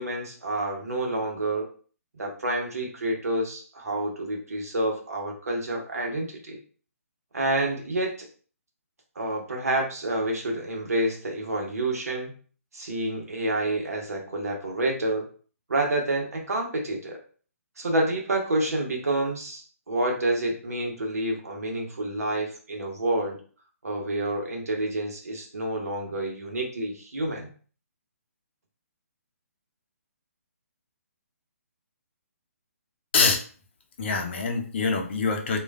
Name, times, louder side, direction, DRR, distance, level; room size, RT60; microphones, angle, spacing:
voice 1, 0.0-1.7 2.2-6.6 7.3-8.3 9.2-12.3 12.7-15.3 15.7-17.2 17.8-23.4 23.8-27.5, right 1 dB, 80° right, 2 dB, 0.9 m, -28 dB
voice 2, 34.0-35.6, left 4 dB, 45° left, 3 dB, 0.6 m, -24 dB
3.1 x 2.4 x 2.4 m, 0.41 s
figure-of-eight pair, 145°, 8 cm